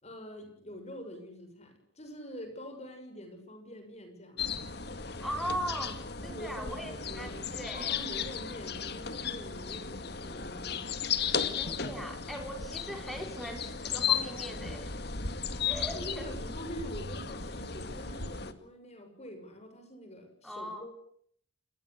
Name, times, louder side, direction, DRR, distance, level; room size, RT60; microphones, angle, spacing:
voice 1, 0.0-4.7 6.2-7.5 7.8-11.0 15.5-20.9, equal, 40° left, 6 dB, 7.0 m, -45 dB
sound 1, 4.4-18.5, left 6 dB, 60° left, 2.1 m, -35 dB
voice 2, 5.2-7.9 11.5-15.0 15.7-16.3 20.4-20.9, equal, ahead, 5 dB, 5.1 m, -39 dB
29.0 x 20.5 x 8.3 m, 0.64 s
head